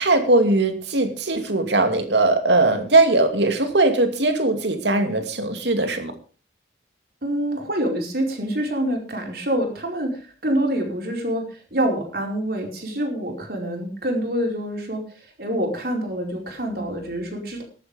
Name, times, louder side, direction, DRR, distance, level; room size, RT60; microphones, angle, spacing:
voice 1, 0.0-6.1, right 2 dB, 80° right, 7 dB, 2.6 m, -20 dB
voice 2, 7.2-17.6, right 1 dB, 55° right, 2 dB, 4.8 m, -26 dB
14.5 x 11.5 x 5.2 m, 0.39 s
head